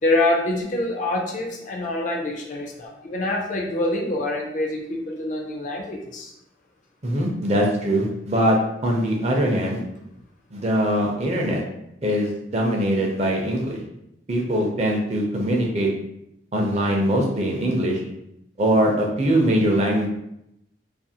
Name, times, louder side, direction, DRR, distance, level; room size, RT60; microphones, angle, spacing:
voice 1, 0.0-6.3, left 2 dB, 45° left, 1 dB, 0.4 m, -25 dB
voice 2, 7.0-8.6 8.8-9.8 10.5-11.6 12.0-13.8 14.3-15.9 16.5-18.0 18.6-20.1, right 1 dB, 35° right, 0 dB, 0.5 m, -22 dB
2.5 x 2.4 x 2.7 m, 0.80 s
head